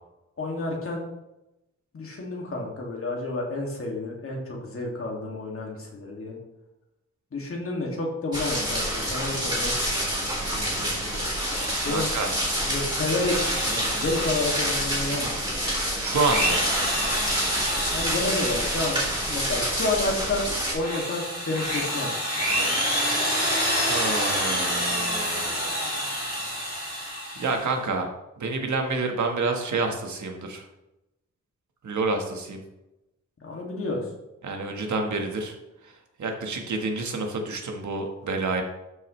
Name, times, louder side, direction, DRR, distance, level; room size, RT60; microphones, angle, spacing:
voice 1, 0.4-1.0 1.9-6.4 7.3-11.2 11.8-12.1 12.6-15.5 17.9-22.7 33.4-34.0, left 2 dB, 50° left, -2 dB, 2.3 m, -30 dB
sound 1, 8.3-20.7, equal, 15° right, 3.7 m, -28 dB
Drill, 11.4-12.6 13.1-15.5 16.0-19.7 20.2-27.7, equal, 30° left, 3.3 m, -28 dB
voice 2, 11.9-12.3 16.0-16.6 23.8-25.9 27.4-28.1 28.4-30.6 31.8-32.6 34.4-35.5 35.8-38.6, right 3 dB, 80° right, 3 dB, 1.5 m, -28 dB
12.5 x 6.4 x 3.3 m, 0.94 s
wide cardioid pair, 175°, 29 cm